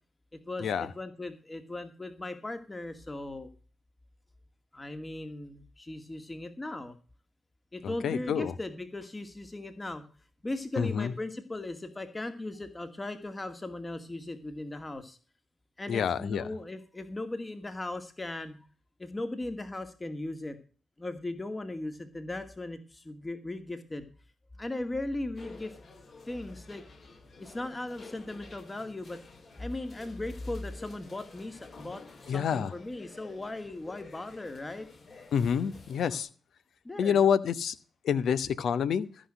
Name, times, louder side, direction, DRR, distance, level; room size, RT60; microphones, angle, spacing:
voice 1, 0.3-3.5 4.7-7.0 7.7-10.1 10.4-15.2 15.8-18.6 19.0-20.6 21.0-24.1 24.6-25.8 26.3-26.8 27.3-29.2 29.6-34.9 36.8-37.2, left 2 dB, 25° left, 8 dB, 2.2 m, -38 dB
voice 2, 8.0-8.5 10.8-11.1 15.9-16.4 32.3-32.7 35.3-36.3 37.0-37.7 38.0-39.1, left 7 dB, 70° left, 13 dB, 1.0 m, -27 dB
sound 1, 25.3-36.2, left 3 dB, 50° left, 8.0 m, -51 dB
14.0 x 6.3 x 6.5 m, 0.38 s
hypercardioid pair, 45°, 0 cm